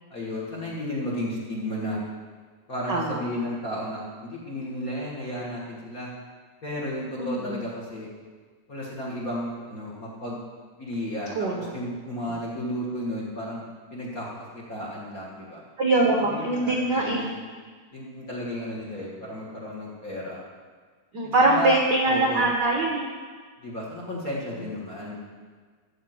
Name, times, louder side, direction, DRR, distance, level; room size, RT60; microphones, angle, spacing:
voice 1, 0.1-2.0 2.7-6.1 6.6-8.1 8.7-10.4 10.8-13.6 13.9-15.6 16.2-17.3 17.9-20.4 21.2-21.7 22.0-22.5 23.6-25.2, left 1 dB, 40° left, -4 dB, 1.4 m, -33 dB
voice 2, 2.9-3.2 7.2-7.6 11.4-11.7 15.8-17.3 21.1-23.1, right 2 dB, 80° right, 0 dB, 0.9 m, -23 dB
13.0 x 5.2 x 7.7 m, 1.5 s
omnidirectional pair, 3.7 m